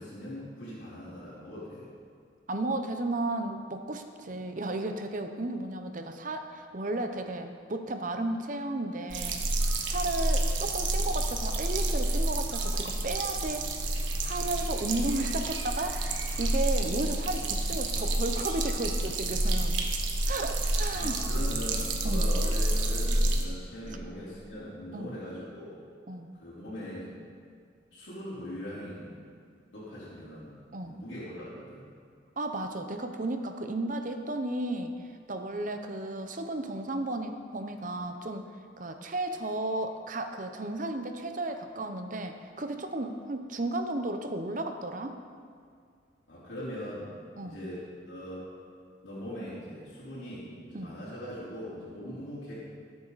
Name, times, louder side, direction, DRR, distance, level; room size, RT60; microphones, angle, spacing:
voice 1, 0.0-1.8 20.9-25.7 26.4-27.1 27.9-29.2 29.7-30.5 30.8-31.8 46.3-48.5 49.0-52.5, equal, 75° left, -10 dB, 4.0 m, -40 dB
voice 2, 2.5-9.4 9.9-13.7 14.2-16.0 16.4-19.8 20.3-21.2 22.0-22.3 24.9-25.1 26.1-26.3 30.7-31.0 32.4-34.9 35.3-38.4 38.8-45.1 47.4-47.6 50.7-50.9, right 2 dB, 45° right, 6 dB, 0.8 m, -34 dB
sound 1, 9.1-23.4, right 1 dB, 85° right, 1.5 m, -29 dB
19.5 x 8.8 x 4.1 m, 2.2 s
head